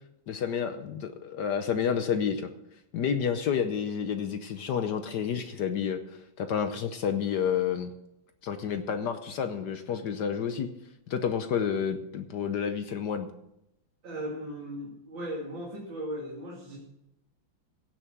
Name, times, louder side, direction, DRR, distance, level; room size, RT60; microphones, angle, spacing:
voice 1, 0.3-2.5 2.9-7.9 8.4-10.7 11.1-13.3, left 7 dB, 65° left, 8 dB, 1.4 m, -30 dB
voice 2, 14.0-16.8, equal, 85° right, -3 dB, 3.2 m, -37 dB
16.5 x 7.4 x 6.1 m, 0.84 s
omnidirectional pair, 2.0 m